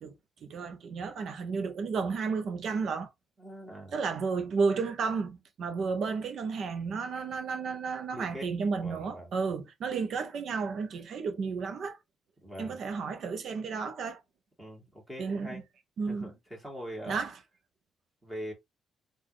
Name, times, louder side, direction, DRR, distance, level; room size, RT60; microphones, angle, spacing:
voice 1, 0.4-3.1 3.9-12.0 12.6-14.2 15.2-15.6 16.0-16.3 17.1-17.3, right 5 dB, 55° right, 0.8 m, -32 dB
voice 2, 3.4-3.9 8.1-8.5 8.8-9.3 12.4-12.8 14.6-15.6 16.1-17.2 18.2-18.5, equal, 10° right, 1.9 m, -42 dB
4.0 x 2.6 x 3.1 m
cardioid pair, 130°, 0 cm